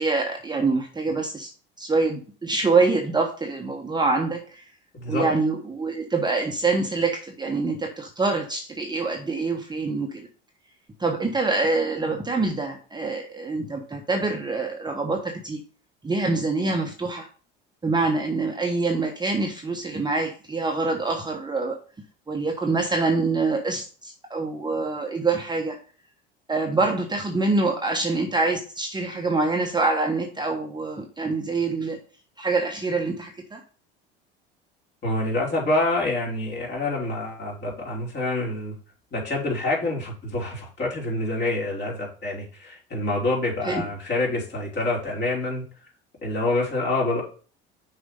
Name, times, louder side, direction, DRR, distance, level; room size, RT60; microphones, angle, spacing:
voice 1, 0.0-1.5 1.8-4.6 5.1-10.3 11.0-15.6 16.0-17.3 17.8-21.8 22.3-25.8 26.5-32.0 32.4-33.6 43.6-43.8, right 3 dB, 15° right, 2 dB, 1.1 m, -25 dB
voice 2, 4.9-5.3 35.0-38.8 39.1-45.7 46.2-47.2, left 2 dB, 35° left, -2 dB, 3.6 m, -26 dB
6.2 x 4.3 x 5.4 m, 0.39 s
hypercardioid pair, 70°, 29 cm